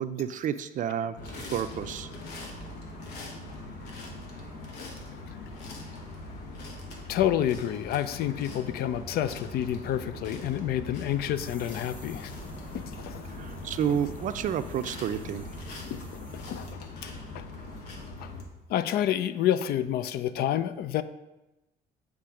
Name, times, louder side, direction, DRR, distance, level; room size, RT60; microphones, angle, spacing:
voice 1, 0.0-2.1 13.4-15.5, right 9 dB, 50° right, 11 dB, 0.4 m, -30 dB
sound 1, 1.2-18.4, left 2 dB, 80° left, 1.3 m, -41 dB
voice 2, 7.1-12.3 12.7-13.2 13.9-14.0 15.8-16.0 16.3-16.7 17.0-17.4 18.2-18.3 18.7-21.0, left 11 dB, 65° left, 13 dB, 0.4 m, -29 dB
sound 2, 11.4-16.7, left 1 dB, 10° left, 0.7 m, -50 dB
8.5 x 3.3 x 4.9 m, 0.98 s
cardioid pair, 110°, 17 cm